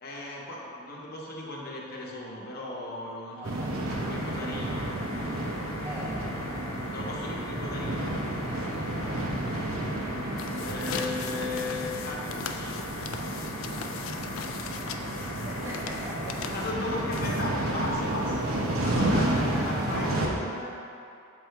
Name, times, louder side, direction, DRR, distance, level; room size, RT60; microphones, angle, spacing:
voice 1, 0.0-3.7 4.0-4.9 6.7-8.2 10.6-12.8 16.5-18.5 18.8-20.8, left 2 dB, 50° left, -2 dB, 0.9 m, -36 dB
voice 2, 3.3-3.7 5.8-6.2 8.4-8.9 14.9-16.4, equal, 15° right, -6 dB, 0.5 m, -42 dB
sound 1, 3.4-20.3, right 1 dB, 85° right, 0.8 m, -31 dB
sound 2, 3.9-17.9, left 3 dB, 85° left, 0.7 m, -42 dB
sound 3, 10.3-17.8, left 6 dB, 70° left, 0.3 m, -40 dB
7.4 x 2.8 x 4.5 m, 2.6 s
head